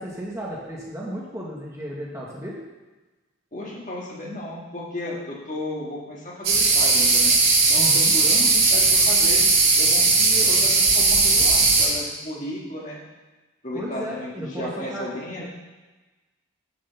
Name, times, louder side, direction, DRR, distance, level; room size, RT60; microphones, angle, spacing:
voice 1, 0.0-2.6 7.8-8.1 13.7-15.1, equal, 15° right, -4 dB, 1.5 m, -34 dB
voice 2, 3.5-7.4 7.7-9.4 9.8-13.0 13.6-15.4, left 1 dB, 40° left, -4 dB, 2.0 m, -34 dB
sound 1, 6.4-11.9, right 3 dB, 80° right, 3.2 m, -18 dB
7.0 x 6.6 x 7.0 m, 1.2 s
head